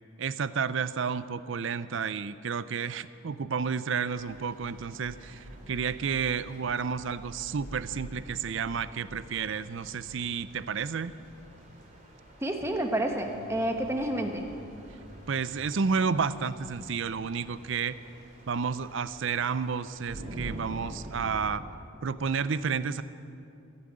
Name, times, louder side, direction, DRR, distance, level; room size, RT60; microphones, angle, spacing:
voice 1, 0.2-11.1 15.3-18.0 18.5-21.6 22.0-23.0, right 6 dB, 60° right, 15 dB, 0.5 m, -31 dB
sound 1, 4.1-21.4, right 1 dB, 40° right, 2.5 m, -47 dB
voice 2, 12.4-14.5, right 1 dB, 15° right, 3 dB, 1.1 m, -29 dB
15.0 x 10.0 x 8.7 m, 2.6 s
head